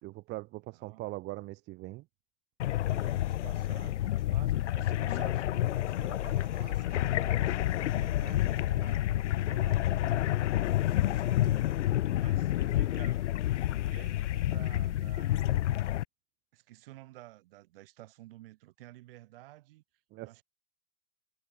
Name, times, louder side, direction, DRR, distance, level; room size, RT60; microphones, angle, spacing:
voice 1, 0.0-2.0 20.1-20.4, right 20 dB, 30° right, 3.6 m, -41 dB
voice 2, 0.7-1.1 2.9-11.8 12.2-13.2 13.9-15.6 16.5-19.8 20.2-20.4, right 17 dB, 50° right, 8.0 m, -52 dB
sound 1, 2.6-16.0, left 13 dB, 80° left, 0.7 m, -29 dB
hypercardioid pair, 150°, 35 cm